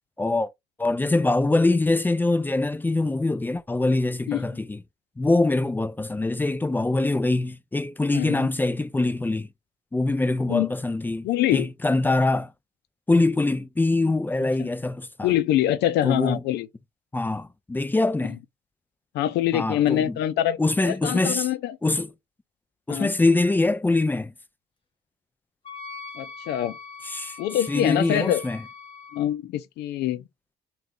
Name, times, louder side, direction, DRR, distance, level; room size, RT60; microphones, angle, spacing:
voice 1, 0.2-0.5 0.8-4.8 5.2-9.5 9.9-12.5 13.1-15.3 16.0-16.4 17.1-18.4 19.5-20.2 20.6-21.5 21.8-22.1 22.9-24.3 27.1-27.4 27.7-28.6, left 2 dB, 10° left, 0.4 m, -23 dB
voice 2, 8.1-8.5 10.5-10.7 11.2-11.7 14.6-14.7 15.2-16.7 19.1-20.6 20.8-21.8 22.9-23.1 26.2-26.8 27.4-28.4 29.1-30.2, left 12 dB, 80° left, 0.6 m, -24 dB
Wind instrument woodwind instrument, 25.6-29.3, left 4 dB, 30° left, 1.9 m, -42 dB
3.9 x 2.4 x 3.6 m
cardioid pair, 110°, 17 cm